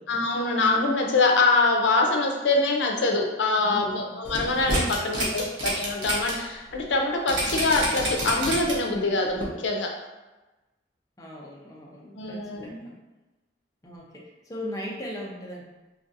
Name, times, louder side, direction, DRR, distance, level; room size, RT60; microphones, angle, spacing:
voice 1, 0.1-9.9 12.2-12.8, left 3 dB, 80° left, 1 dB, 0.5 m, -24 dB
voice 2, 3.6-4.0 5.0-5.2 7.4-7.5 11.2-12.9 13.8-15.6, equal, 20° left, -4 dB, 0.5 m, -38 dB
sound 1, 4.2-6.3 6.7-6.8 7.3-8.9 9.4-9.5, right 1 dB, 90° right, 0.9 m, -28 dB
3.2 x 2.6 x 2.5 m, 1.1 s
head